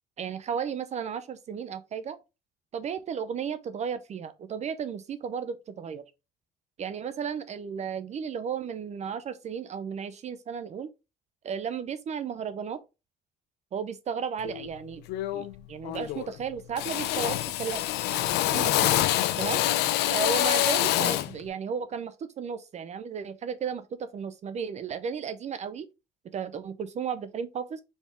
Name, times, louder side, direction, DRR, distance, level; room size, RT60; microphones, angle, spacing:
voice 1, 0.2-2.2 2.7-6.0 6.8-10.9 11.4-12.8 13.7-15.0 15.3-17.8 18.1-18.2 18.5-19.0 19.4-19.6 20.1-25.9 26.3-27.8, right 7 dB, 40° right, 0.5 m, -34 dB
Drill, 14.4-14.7 15.1-15.6 15.8-16.4 16.8-21.4, left 14 dB, 85° left, 0.5 m, -26 dB
4.2 x 3.4 x 3.4 m
cardioid pair, 110°, 17 cm